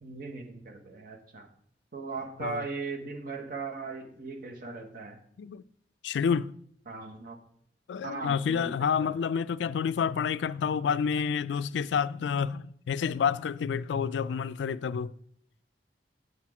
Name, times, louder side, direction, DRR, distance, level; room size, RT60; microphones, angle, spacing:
voice 1, 0.0-1.5 1.9-5.2 6.9-7.4 8.0-9.1, right 4 dB, 55° right, 1.1 m, -38 dB
voice 2, 6.0-6.5 7.9-15.1, left 6 dB, 80° left, 0.3 m, -29 dB
7.9 x 5.9 x 4.7 m
head